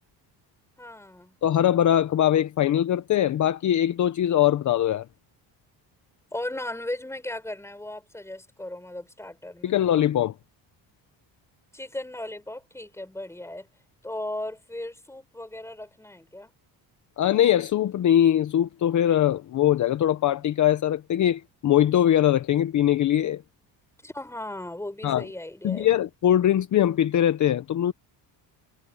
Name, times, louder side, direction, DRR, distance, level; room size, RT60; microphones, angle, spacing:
voice 1, 0.8-1.3 6.3-9.8 11.7-13.7 14.0-16.5 24.0-25.9, left 1 dB, 5° left, 7.4 m, -36 dB
voice 2, 1.4-5.0 9.6-10.3 17.2-23.4 25.0-25.2 25.6-27.9, left 11 dB, 45° left, 0.9 m, -22 dB
cardioid pair, 145°, 42 cm